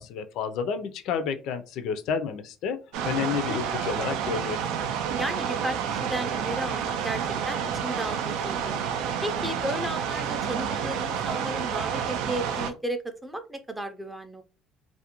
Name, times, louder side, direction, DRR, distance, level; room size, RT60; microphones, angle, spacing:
voice 1, 0.0-2.8 3.0-4.6, left 6 dB, 65° left, 9 dB, 0.4 m, -30 dB
sound 1, 2.9-12.7, right 7 dB, 80° right, 0.3 m, -29 dB
voice 2, 5.2-8.8 9.2-14.4, right 1 dB, 5° right, 7 dB, 0.4 m, -34 dB
2.4 x 2.1 x 2.8 m, 0.33 s
cardioid pair, 135°, 0 cm